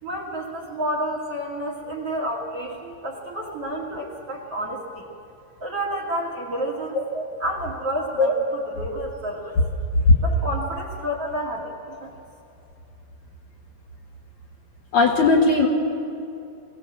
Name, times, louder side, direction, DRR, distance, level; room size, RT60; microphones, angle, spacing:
voice 1, 0.0-5.1 5.6-7.0 7.4-9.6 10.2-12.1, equal, 40° right, 2 dB, 3.0 m, -30 dB
voice 2, 14.9-15.7, left 3 dB, 55° left, -1 dB, 2.5 m, -17 dB
23.5 x 18.0 x 7.4 m, 2.7 s
omnidirectional pair, 4.7 m